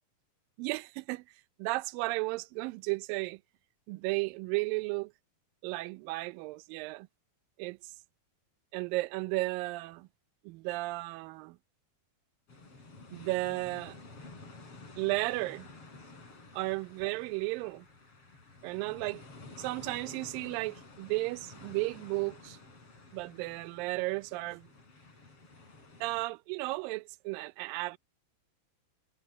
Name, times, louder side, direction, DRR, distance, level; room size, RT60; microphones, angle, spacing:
voice 1, 0.6-1.2 1.6-3.4 3.9-5.1 5.6-7.1 7.6-7.9 8.7-10.1 10.4-11.6 13.1-14.0 15.0-15.7 16.5-17.9 18.6-19.2 19.6-22.6 23.1-24.7 26.0-28.0, right 22 dB, 80° right, 2.3 m, -34 dB
sound 1, 12.5-26.2, left 3 dB, 40° left, 6.0 m, -52 dB
omnidirectional pair, 4.3 m